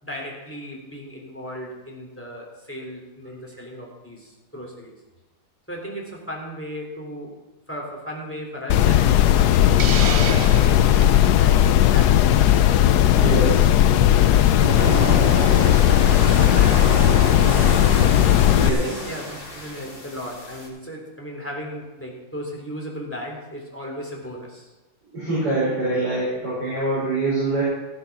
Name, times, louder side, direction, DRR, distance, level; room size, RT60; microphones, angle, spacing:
voice 1, 0.0-5.0 5.7-7.4 7.7-13.8 14.1-15.4 16.1-17.8 18.6-24.7, equal, 5° left, -1 dB, 3.2 m, -36 dB
sound 1, 8.7-18.7, left 11 dB, 70° left, 1.1 m, -16 dB
Hiss, 9.8-11.1, right 8 dB, 90° right, 0.5 m, -29 dB
voice 2, 13.1-13.7 18.5-19.0 25.1-27.6, right 2 dB, 60° right, -8 dB, 6.0 m, -24 dB
sound 2, 14.3-20.7, left 1 dB, 30° left, 3.2 m, -29 dB
16.0 x 8.2 x 6.0 m, 1.2 s
omnidirectional pair, 2.0 m